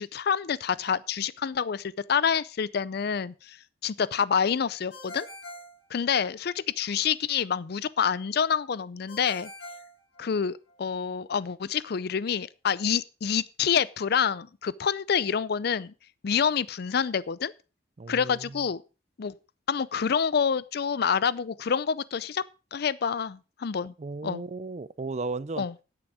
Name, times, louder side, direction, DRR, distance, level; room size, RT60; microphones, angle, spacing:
voice 1, 0.0-3.6 3.8-5.3 5.9-9.5 10.2-15.9 16.2-17.5 18.1-18.8 19.2-19.3 19.7-22.4 22.7-23.9 24.2-24.4 25.6-25.7, left 7 dB, 55° left, 0.5 m, -27 dB
Ringtone, 4.9-6.6 9.1-10.8, left 1 dB, 80° left, 4.4 m, -44 dB
voice 2, 18.0-18.6 24.0-25.7, right 3 dB, 35° right, 0.5 m, -35 dB
9.8 x 8.9 x 4.9 m
head